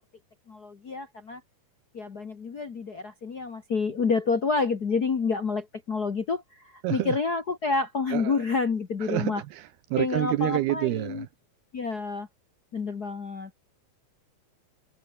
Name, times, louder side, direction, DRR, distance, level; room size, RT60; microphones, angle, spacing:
voice 1, 0.5-1.4 1.9-9.4 10.0-11.2 11.7-12.3 12.7-13.5, left 4 dB, 70° left, 0.9 m, -28 dB
voice 2, 6.8-7.2 8.1-8.4 9.0-11.3, right 16 dB, 80° right, 2.9 m, -28 dB
omnidirectional pair, 4.5 m